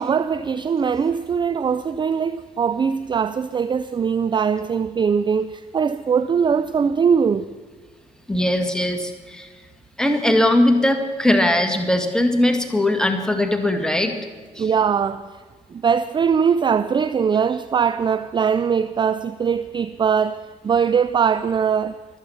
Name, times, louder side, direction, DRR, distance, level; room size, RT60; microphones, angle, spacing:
voice 1, 0.0-7.5 14.6-15.4 15.7-22.0, right 6 dB, 25° right, 0.5 m, -21 dB
voice 2, 8.3-9.5 10.0-14.2 14.6-14.7, left 1 dB, 5° left, 2.0 m, -20 dB
23.5 x 8.2 x 5.8 m
figure-of-eight pair, 45°, 20 cm